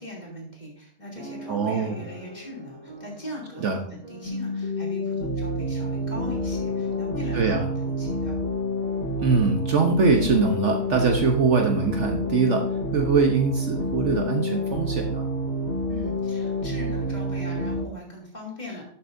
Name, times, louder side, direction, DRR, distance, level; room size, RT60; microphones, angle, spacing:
voice 1, 0.0-8.4 15.8-18.9, left 1 dB, 30° left, -4 dB, 3.0 m, -40 dB
sound 1, 1.2-9.3 9.9-10.0 10.2-10.5, right 1 dB, 85° right, 2.4 m, -46 dB
voice 2, 1.5-2.0 3.6-3.8 7.3-7.6 9.2-12.6 12.9-15.3, right 4 dB, 55° right, 3 dB, 1.1 m, -22 dB
sound 2, 4.3-17.8, equal, 80° left, 2.6 m, -28 dB
12.0 x 6.9 x 2.6 m, 0.63 s
omnidirectional pair, 1.5 m